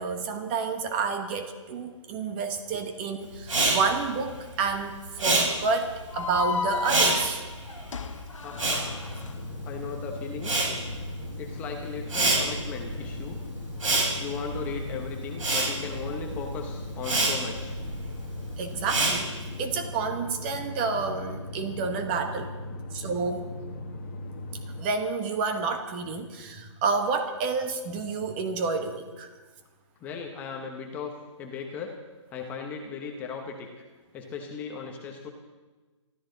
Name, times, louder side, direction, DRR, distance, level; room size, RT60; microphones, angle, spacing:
voice 1, 0.0-7.4 18.6-19.3 19.6-22.5 22.9-23.5 24.8-29.3, right 4 dB, 20° right, 7 dB, 1.1 m, -29 dB
Respiratory sounds, 3.4-9.9 10.1-19.6, right 2 dB, 90° right, 6.8 m, -28 dB
sound 1, 6.1-9.3, left 5 dB, 75° left, 1.2 m, -33 dB
voice 2, 8.4-8.9 9.6-10.5 11.4-13.4 14.2-17.8 30.0-31.1 31.4-31.9 32.3-33.7 34.1-35.3, left 5 dB, 10° left, 2 dB, 0.9 m, -37 dB
sound 2, 8.5-24.9, left 2 dB, 25° left, 1.4 m, -38 dB
23.5 x 13.5 x 3.9 m, 1.3 s
hypercardioid pair, 165°, 16 cm